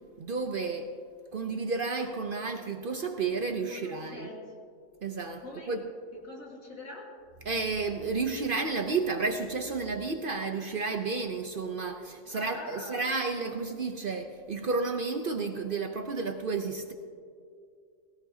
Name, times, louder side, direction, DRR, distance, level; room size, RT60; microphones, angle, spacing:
voice 1, 0.2-0.9 1.3-4.3 5.0-5.8 7.4-16.9, right 4 dB, 50° right, 6 dB, 0.7 m, -31 dB
voice 2, 3.7-4.6 5.4-5.7 6.2-7.1 12.2-13.1, left 2 dB, 75° left, -3 dB, 3.0 m, -44 dB
18.0 x 18.0 x 2.7 m, 2.3 s
omnidirectional pair, 1.4 m